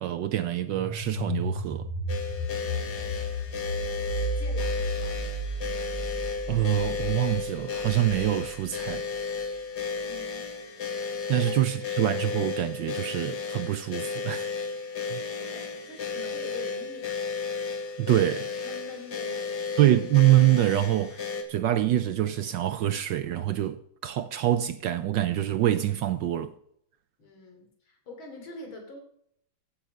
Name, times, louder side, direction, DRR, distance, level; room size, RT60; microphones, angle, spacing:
voice 1, 0.0-1.9 6.5-9.0 11.3-14.5 15.1-15.2 18.0-18.5 19.8-26.5, right 13 dB, 70° right, 1.2 m, -25 dB
sound 1, 0.7-9.4, equal, 15° left, 4.7 m, -33 dB
sound 2, 2.1-21.4, left 5 dB, 50° left, 2.2 m, -33 dB
voice 2, 3.0-5.4 10.0-10.9 11.4-11.5 15.4-17.2 18.6-19.8 27.2-29.0, left 2 dB, 65° left, 3.8 m, -46 dB
15.0 x 8.2 x 5.2 m
omnidirectional pair, 2.3 m